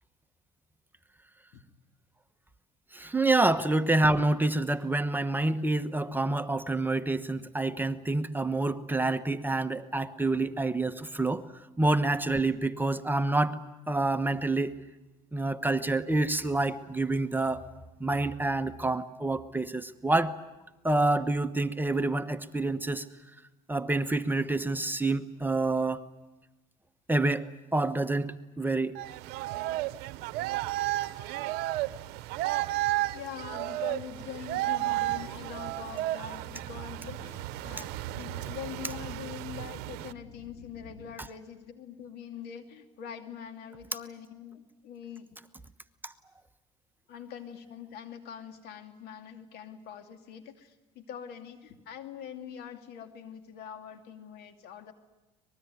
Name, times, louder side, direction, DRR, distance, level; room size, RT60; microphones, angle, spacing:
voice 1, 2.9-11.4 11.8-13.6 13.9-14.7 15.3-17.6 18.0-20.3 20.8-23.0 23.7-26.0 27.1-29.0 46.0-46.1, right 2 dB, 10° right, 10 dB, 1.1 m, -27 dB
sound 1, 28.9-40.1, right 16 dB, 70° right, 0.9 m, -33 dB
voice 2, 33.1-45.3 47.1-54.9, left 8 dB, 65° left, 6 dB, 2.6 m, -44 dB
sound 2, 34.4-41.0, left 3 dB, 85° left, 6.3 m, -53 dB
24.5 x 20.5 x 9.5 m, 1.1 s
hypercardioid pair, 80°, 18 cm